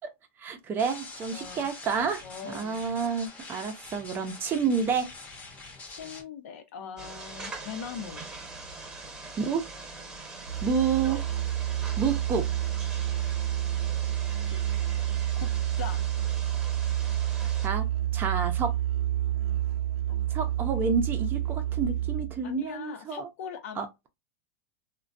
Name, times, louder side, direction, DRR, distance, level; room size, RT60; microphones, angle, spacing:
voice 1, 0.4-5.1 9.4-9.6 10.6-11.2 12.0-12.5 17.6-17.9 18.1-18.7 20.3-23.3 23.8-23.9, right 6 dB, 25° right, 0.6 m, -29 dB
sound 1, 0.8-6.2, left 3 dB, 20° left, 0.8 m, -45 dB
voice 2, 1.3-1.7 2.2-2.8 5.9-8.2 14.5-14.6 15.3-16.0 20.1-20.2 22.4-23.9, left 7 dB, 75° left, 0.7 m, -41 dB
sound 2, 7.0-17.7, right 3 dB, 10° right, 1.0 m, -43 dB
Musical instrument, 10.5-22.5, right 12 dB, 75° right, 0.5 m, -29 dB
3.1 x 2.2 x 2.5 m
supercardioid pair, 145°, 8 cm